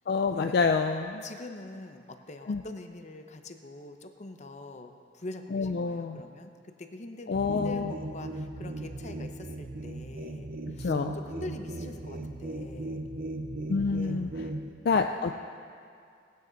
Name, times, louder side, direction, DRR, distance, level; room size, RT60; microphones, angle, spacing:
voice 1, 0.1-1.2 2.5-2.6 5.5-6.2 7.3-7.9 10.8-11.2 13.7-14.5 14.8-15.4, left 4 dB, 60° left, 5 dB, 0.4 m, -27 dB
voice 2, 1.2-13.0 14.0-14.3, left 2 dB, 40° left, 6 dB, 0.8 m, -44 dB
sound 1, 7.3-14.7, right 2 dB, 50° right, 0.7 m, -37 dB
19.0 x 9.4 x 4.0 m, 2.3 s
head